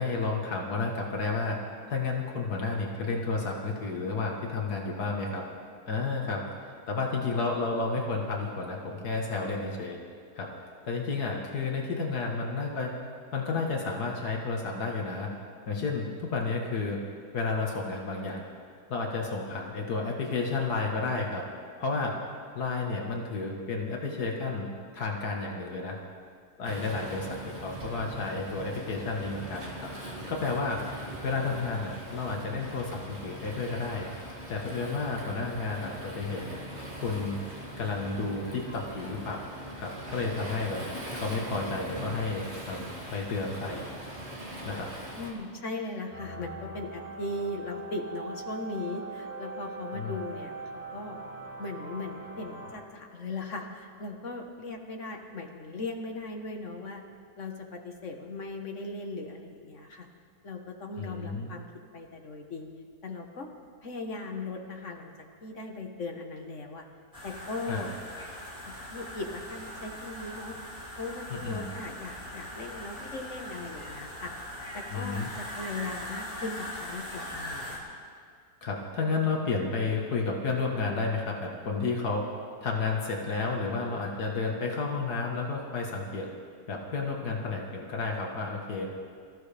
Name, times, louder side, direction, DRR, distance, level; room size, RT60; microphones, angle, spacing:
voice 1, 0.0-1.6 1.9-5.4 5.9-10.0 10.4-10.5 10.8-12.9 13.3-15.3 15.7-17.0 17.3-18.4 18.9-21.4 21.8-22.2 22.6-24.7 24.9-26.0 26.6-29.9 30.3-34.1 34.5-36.6 37.0-37.4 37.8-39.5 39.8-40.8 41.1-43.9 44.7-44.9 49.9-50.2 61.0-61.5 67.7-68.0 71.3-71.7 74.9-75.3 78.6-82.3 82.6-86.3 86.7-88.9, left 4 dB, 75° left, 0 dB, 2.0 m, -31 dB
Waves surf, 26.6-45.3, equal, 40° right, 2.8 m, -41 dB
voice 2, 45.2-51.2 51.6-57.0 57.4-60.1 60.4-61.6 61.9-62.7 63.0-63.5 63.8-65.1 65.4-66.8 67.2-67.9 68.7-70.5 71.0-74.3 74.7-77.8, left 2 dB, 50° left, 3 dB, 1.6 m, -38 dB
sound 1, 46.1-52.7, right 3 dB, 65° right, 5.2 m, -41 dB
sound 2, 67.1-77.8, left 1 dB, 20° left, 5.6 m, -41 dB
24.5 x 14.5 x 3.4 m, 2.1 s
omnidirectional pair, 1.7 m